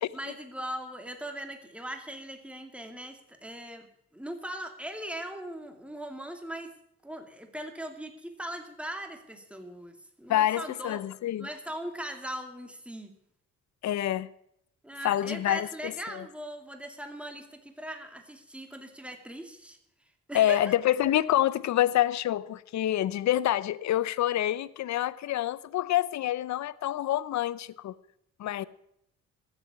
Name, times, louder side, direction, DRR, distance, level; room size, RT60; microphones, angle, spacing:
voice 1, 0.1-6.7 7.0-11.1 11.4-13.1 14.8-19.8 20.3-20.8, right 1 dB, 5° right, 2.5 m, -40 dB
voice 2, 10.3-11.5 13.8-14.3 15.0-16.2 20.3-28.0 28.4-28.6, left 13 dB, 65° left, 0.8 m, -27 dB
14.5 x 8.1 x 9.5 m
cardioid pair, 90°, 30 cm